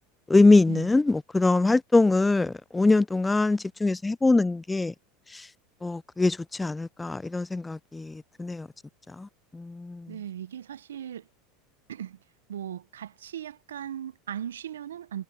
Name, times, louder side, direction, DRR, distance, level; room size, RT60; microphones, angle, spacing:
voice 1, 0.3-4.9 5.8-8.7 9.2-9.3 9.5-10.1, left 3 dB, 10° left, 0.4 m, -23 dB
voice 2, 10.1-11.3 11.9-12.2 12.5-15.2, right 10 dB, 80° right, 0.9 m, -38 dB
hypercardioid pair, 80°, 0 cm